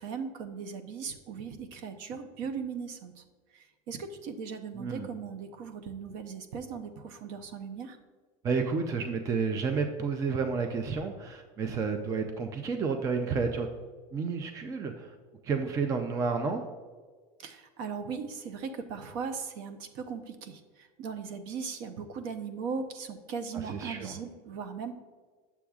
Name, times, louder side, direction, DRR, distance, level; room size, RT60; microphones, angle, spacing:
voice 1, 0.0-3.2 3.5-8.0 17.4-24.9, right 6 dB, 55° right, 9 dB, 0.7 m, -38 dB
voice 2, 4.8-5.1 8.4-13.7 14.1-15.1 15.4-16.6 23.5-24.2, right 5 dB, 20° right, 6 dB, 0.4 m, -31 dB
9.9 x 7.0 x 2.3 m, 1.5 s
cardioid pair, 165°, 16 cm